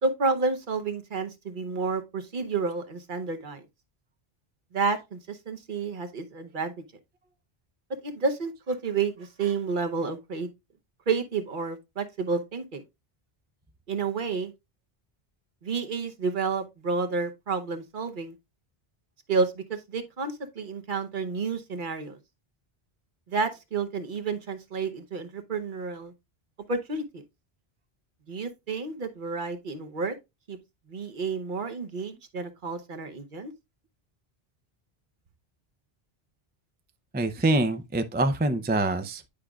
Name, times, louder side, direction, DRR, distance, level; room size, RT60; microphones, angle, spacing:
voice 1, 0.0-3.6 4.7-6.7 8.0-10.5 11.1-12.8 13.9-14.5 15.6-18.3 19.3-22.2 23.3-26.1 26.7-27.2 28.3-30.1 30.5-30.6 30.9-33.5, right 4 dB, 55° right, 1.0 m, -30 dB
voice 2, 37.1-39.3, right 2 dB, 15° right, 0.3 m, -25 dB
10.0 x 5.0 x 2.3 m
omnidirectional pair, 1.1 m